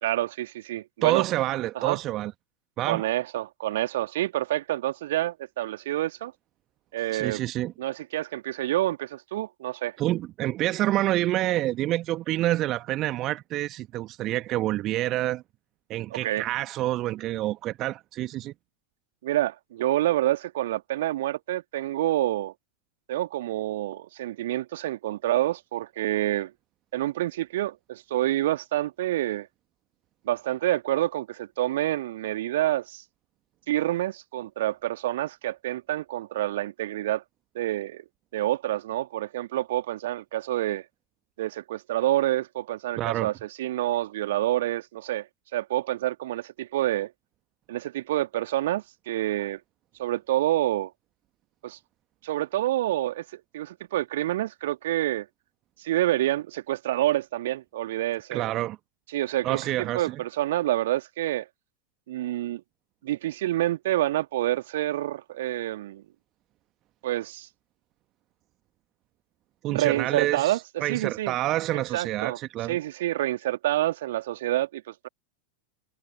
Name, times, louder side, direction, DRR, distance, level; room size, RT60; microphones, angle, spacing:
voice 1, 0.0-1.2 1.8-2.0 2.9-6.3 6.9-7.4 7.8-10.0 16.1-16.4 19.2-22.5 23.1-26.5 26.9-29.5 30.3-33.0 33.7-37.2 37.5-38.0 38.3-40.8 41.4-45.3 45.5-47.1 47.7-49.6 50.0-50.9 51.6-51.8 52.2-55.3 55.8-58.5 59.1-61.5 62.1-62.6 63.0-66.0 67.0-67.5 69.7-71.3 71.7-72.4 72.7-75.1, right 14 dB, 55° right, 2.2 m, -28 dB
voice 2, 1.0-2.3 2.8-3.1 7.1-7.7 10.0-15.4 15.9-18.5 43.0-43.3 58.3-58.8 59.4-60.2 69.6-72.8, right 15 dB, 35° right, 1.4 m, -28 dB
figure-of-eight pair, 90°, 0 cm